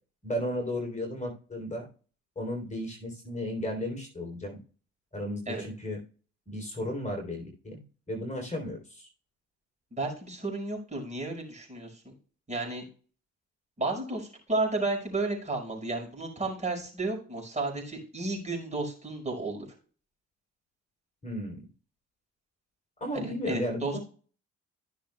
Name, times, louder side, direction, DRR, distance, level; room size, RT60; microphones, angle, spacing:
voice 1, 0.2-1.9 2.4-4.6 5.1-6.0 6.5-7.8 8.1-9.1 21.2-21.6 23.0-24.0, left 1 dB, 25° left, 1 dB, 3.6 m, -34 dB
voice 2, 9.9-12.1 12.5-12.8 13.8-19.6 23.1-24.0, right 2 dB, 25° right, 0 dB, 5.5 m, -32 dB
15.5 x 6.4 x 2.3 m, 0.39 s
cardioid pair, 90°, 30 cm